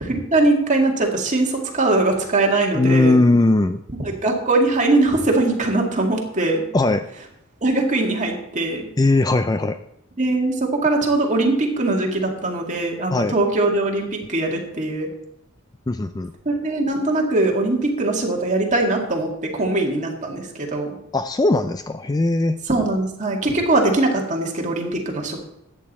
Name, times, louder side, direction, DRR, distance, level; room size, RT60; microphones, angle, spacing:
voice 1, 0.0-3.2 4.0-6.6 7.6-8.9 10.2-15.1 16.5-21.0 22.7-25.4, right 2 dB, 35° right, 0 dB, 2.1 m, -21 dB
voice 2, 2.7-3.8 6.7-7.0 9.0-9.8 13.1-13.3 15.9-16.3 21.1-22.6, left 2 dB, 20° left, 10 dB, 0.3 m, -19 dB
13.5 x 9.0 x 4.2 m, 0.82 s
head